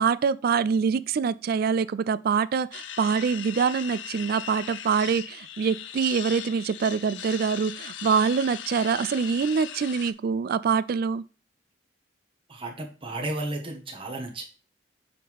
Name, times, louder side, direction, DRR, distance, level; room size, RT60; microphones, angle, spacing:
voice 1, 0.0-11.2, right 6 dB, 55° right, 0.3 m, -25 dB
sound 1, 2.7-10.1, left 10 dB, 80° left, 0.5 m, -39 dB
voice 2, 12.5-14.4, right 2 dB, 30° right, 1.2 m, -33 dB
6.9 x 3.6 x 4.6 m
head